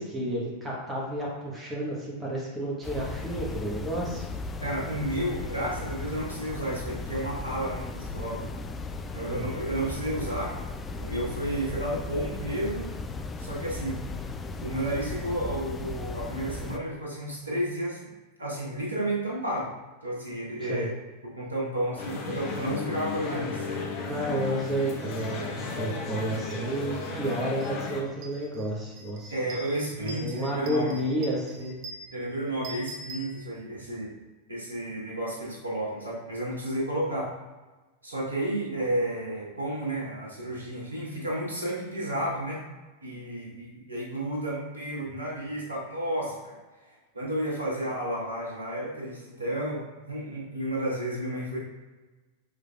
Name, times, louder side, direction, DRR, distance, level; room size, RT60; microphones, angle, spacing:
voice 1, 0.0-4.3 9.2-9.5 20.6-20.9 23.2-23.5 24.1-29.3 30.0-31.8, right 1 dB, 15° right, -5 dB, 1.1 m, -31 dB
sound 1, 2.8-16.8, left 3 dB, 20° left, 0.3 m, -36 dB
voice 2, 4.6-8.5 9.1-10.6 11.0-12.9 13.4-14.1 14.6-18.1 18.4-19.7 20.0-20.9 21.4-23.7 29.3-31.0 32.1-34.1 34.5-37.3 38.0-42.7 43.0-46.6 46.9-51.6, right 1 dB, 75° right, -4 dB, 1.1 m, -32 dB
sound 2, 22.0-28.0, left 4 dB, 40° left, 0.8 m, -34 dB
sound 3, 27.6-27.7 28.1-33.9, right 2 dB, 40° right, 0.7 m, -45 dB
6.2 x 3.3 x 2.3 m, 1.2 s
figure-of-eight pair, 90°, 0 cm